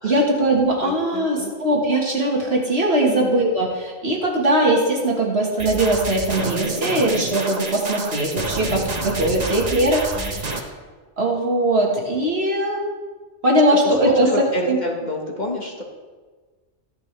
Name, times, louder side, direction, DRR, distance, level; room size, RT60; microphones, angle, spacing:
voice 1, 0.0-10.7 11.2-12.8 13.4-14.3 14.7-14.8, right 1 dB, 55° right, -1 dB, 1.9 m, -20 dB
voice 2, 0.8-1.5 3.1-3.4 10.1-10.4 14.0-15.8, left 1 dB, 35° left, 0 dB, 1.6 m, -28 dB
sound 1, 5.6-10.6, right 3 dB, 35° right, 1.1 m, -28 dB
14.0 x 10.5 x 3.3 m, 1.4 s
omnidirectional pair, 1.2 m